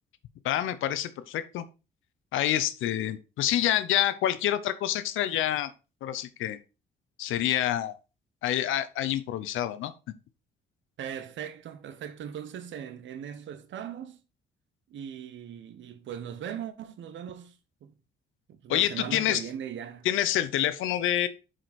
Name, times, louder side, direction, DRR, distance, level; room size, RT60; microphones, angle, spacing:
voice 1, 0.4-1.6 2.3-5.7 6.0-6.6 7.2-7.9 8.4-9.9 18.7-19.4 20.0-21.3, left 12 dB, 85° left, 0.7 m, -27 dB
voice 2, 11.0-14.2 14.9-17.5 17.8-17.9 18.5-20.1, right 9 dB, 70° right, 1.0 m, -39 dB
7.6 x 5.0 x 4.1 m
cardioid pair, 90°, 20 cm